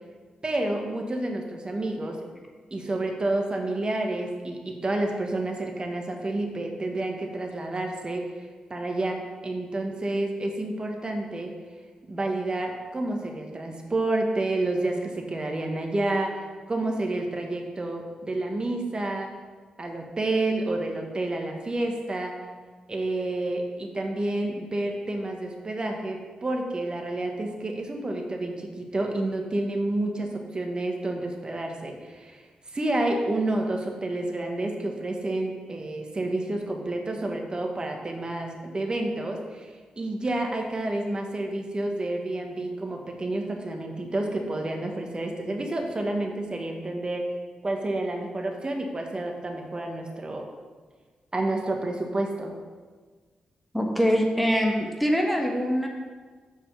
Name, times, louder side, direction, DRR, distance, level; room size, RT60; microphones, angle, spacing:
voice 1, 0.4-2.2 2.7-11.5 12.1-19.3 19.8-22.3 22.9-47.3 47.6-50.5 51.3-52.5, right 2 dB, 35° right, 2 dB, 1.5 m, -29 dB
voice 2, 53.7-55.9, equal, ahead, 1 dB, 1.3 m, -23 dB
6.9 x 5.5 x 5.9 m, 1.4 s
supercardioid pair, 50°, 3 cm